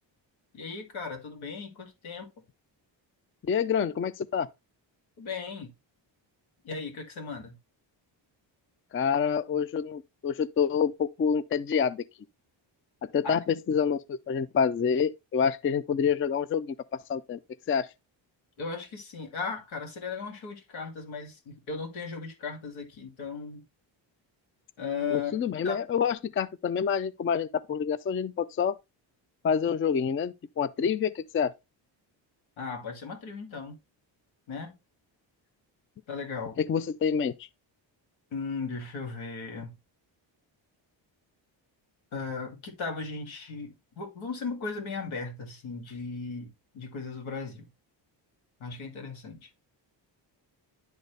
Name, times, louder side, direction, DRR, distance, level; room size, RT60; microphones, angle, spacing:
voice 1, 0.5-2.3 5.2-5.7 6.6-7.6 13.2-13.3 18.6-23.6 24.8-25.4 25.6-25.8 32.6-33.8 34.5-34.7 36.1-36.6 38.3-39.8 42.1-47.7 48.6-49.5, left 4 dB, 85° left, 2.4 m, -36 dB
voice 2, 3.5-4.5 8.9-12.0 13.1-16.8 17.1-17.4 17.7-17.9 25.1-28.8 29.4-31.5 36.7-37.3, left 7 dB, 30° left, 0.4 m, -27 dB
10.5 x 4.0 x 3.2 m
cardioid pair, 100°, 46 cm